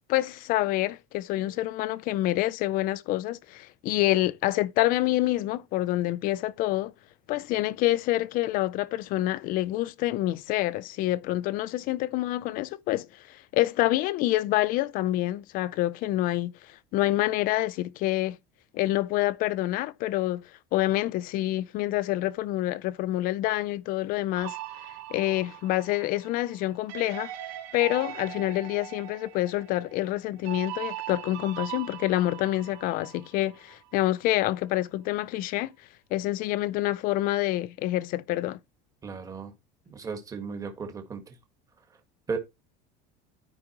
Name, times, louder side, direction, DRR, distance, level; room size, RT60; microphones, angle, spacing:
voice 1, 0.1-6.9 7.3-16.5 16.9-18.4 18.7-20.4 20.7-24.6 25.1-27.3 27.7-35.7 36.1-38.6, left 16 dB, 40° left, 0.5 m, -27 dB
sound 1, 24.4-33.8, right 14 dB, 60° right, 2.8 m, -40 dB
voice 2, 39.0-39.5 39.9-41.3 42.3-42.4, right 4 dB, 15° right, 1.5 m, -35 dB
13.0 x 5.0 x 2.9 m
cardioid pair, 170°, 21 cm